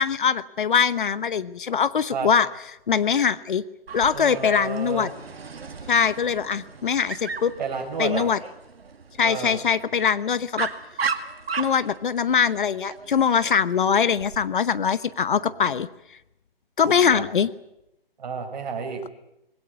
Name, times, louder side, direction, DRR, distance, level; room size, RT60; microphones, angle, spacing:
voice 1, 0.0-2.5 2.9-3.6 3.9-5.1 5.9-7.5 8.0-8.4 9.2-10.7 11.6-15.9 16.8-17.5, left 7 dB, 55° left, 16 dB, 1.0 m, -22 dB
Dog, 3.9-14.4, right 5 dB, 85° right, 2.2 m, -36 dB
voice 2, 4.1-5.1 7.6-8.3 9.2-9.6 15.3-15.6 16.8-17.2 18.2-19.0, right 5 dB, 45° right, 3 dB, 5.6 m, -31 dB
21.0 x 17.5 x 9.4 m, 0.87 s
hypercardioid pair, 165°, 30 cm